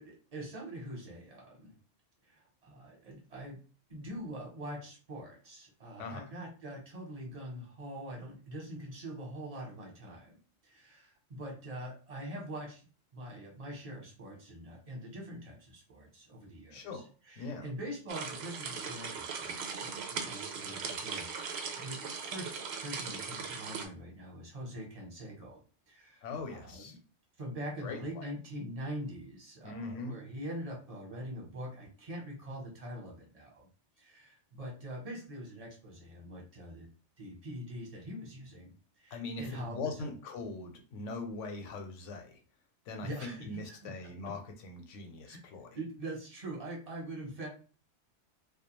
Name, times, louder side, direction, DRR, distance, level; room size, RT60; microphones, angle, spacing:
voice 1, 0.0-1.8 2.2-3.6 3.9-10.3 10.6-12.8 13.1-22.5 22.8-25.6 25.9-27.0 27.4-33.7 34.0-36.9 37.2-38.7 39.0-40.1 43.0-44.3 45.2-45.4 45.7-47.5, right 1 dB, 35° right, -2 dB, 0.9 m, -44 dB
voice 2, 16.7-17.0 17.4-17.7 26.2-27.0 27.8-28.3 29.6-30.2 39.1-42.4 42.9-45.7, left 3 dB, 85° left, 4 dB, 1.0 m, -41 dB
sound 1, 18.1-23.9, right 5 dB, 65° right, 0.7 m, -39 dB
2.3 x 2.3 x 2.9 m, 0.37 s
omnidirectional pair, 1.2 m